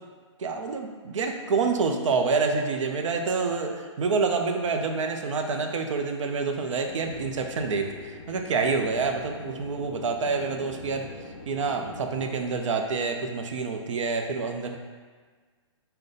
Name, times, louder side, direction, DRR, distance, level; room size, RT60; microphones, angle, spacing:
voice 1, 0.4-11.1 11.5-14.8, right 4 dB, 75° right, 4 dB, 0.5 m, -27 dB
sound 1, 6.9-12.4, left 3 dB, 65° left, 0.5 m, -43 dB
3.7 x 2.2 x 3.9 m, 1.5 s
hypercardioid pair, 155°, 16 cm